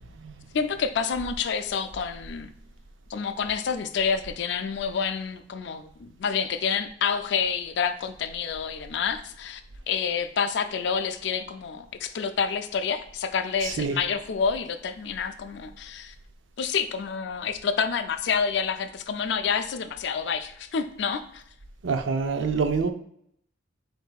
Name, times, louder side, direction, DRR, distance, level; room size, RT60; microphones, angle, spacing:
voice 1, 0.5-2.5 3.1-9.6 9.9-16.1 16.6-21.4, left 6 dB, 65° left, 10 dB, 0.4 m, -28 dB
voice 2, 13.6-14.0 21.8-22.9, right 5 dB, 85° right, 7 dB, 0.5 m, -26 dB
7.7 x 2.6 x 2.3 m, 0.68 s
head